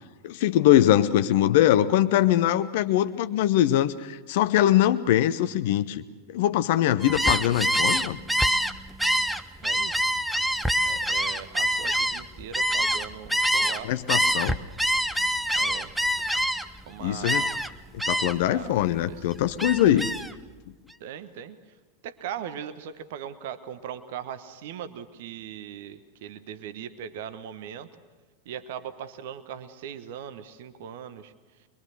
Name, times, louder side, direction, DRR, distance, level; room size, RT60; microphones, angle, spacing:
voice 1, 0.2-6.0 6.3-8.2 13.8-14.6 17.0-17.4 18.1-20.1, left 12 dB, 50° left, 11 dB, 0.7 m, -22 dB
Gull seagull, 7.0-13.8 14.1-16.8 17.2-17.7 18.0-18.5 18.9-20.3, equal, ahead, 0.7 m, -25 dB
voice 2, 9.6-10.1 10.8-13.9 15.6-15.9 16.9-17.6 18.4-18.8 19.0-19.3 19.8-20.0 21.0-21.7 22.0-27.9 28.4-31.7, right 9 dB, 50° right, 11 dB, 1.2 m, -39 dB
24.0 x 22.0 x 6.6 m, 1.3 s
figure-of-eight pair, 90°, 0 cm